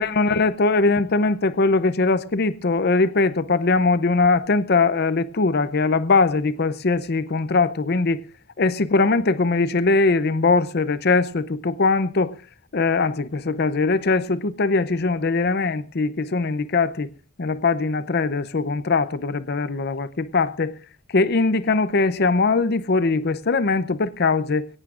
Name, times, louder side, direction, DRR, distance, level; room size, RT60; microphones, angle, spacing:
voice 1, 0.0-8.2 8.6-12.3 12.7-17.1 17.4-20.7 21.1-24.7, left 3 dB, 50° left, 0.6 m, -21 dB
21.0 x 18.0 x 2.5 m
head